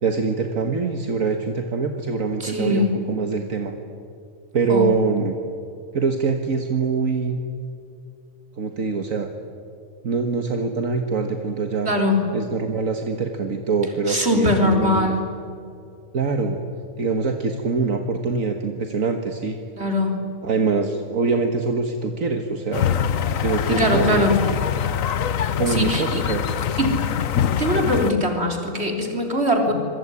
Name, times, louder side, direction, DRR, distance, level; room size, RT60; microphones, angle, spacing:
voice 1, 0.0-3.7 4.5-5.4 5.9-7.4 8.6-9.3 10.0-11.9 12.3-15.2 16.1-16.6 17.0-19.6 20.4-22.9 23.4-24.7 25.6-26.6, right 4 dB, 70° right, 5 dB, 1.9 m, -24 dB
voice 2, 2.4-2.9 4.7-4.9 11.8-12.2 14.1-15.2 19.8-20.1 23.7-24.3 25.7-26.2 26.8-27.0 27.6-29.7, left 1 dB, 50° right, 3 dB, 4.1 m, -21 dB
sound 1, 22.7-28.1, left 8 dB, 75° left, 1.4 m, -24 dB
26.0 x 23.0 x 9.8 m, 2.5 s
omnidirectional pair, 1.4 m